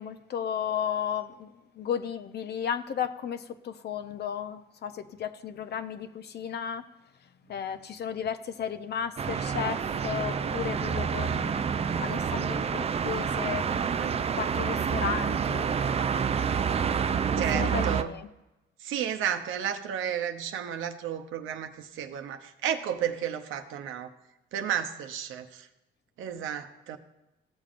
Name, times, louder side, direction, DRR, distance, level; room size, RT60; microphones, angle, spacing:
voice 1, 0.0-1.5 1.8-6.8 7.5-11.7 12.0-13.6 14.0-15.7 17.3-18.3, left 8 dB, 55° left, 11 dB, 0.6 m, -34 dB
sound 1, 9.2-18.0, right 7 dB, 30° right, 0.4 m, -28 dB
sound 2, 9.6-15.9, equal, 5° left, 0.7 m, -46 dB
voice 2, 10.4-11.1 13.9-14.1 15.6-15.7 17.4-18.1 18.8-24.1 24.5-25.7 26.2-27.0, right 9 dB, 85° right, 6 dB, 0.7 m, -33 dB
14.0 x 7.3 x 2.5 m, 0.98 s
cardioid pair, 90°, 20 cm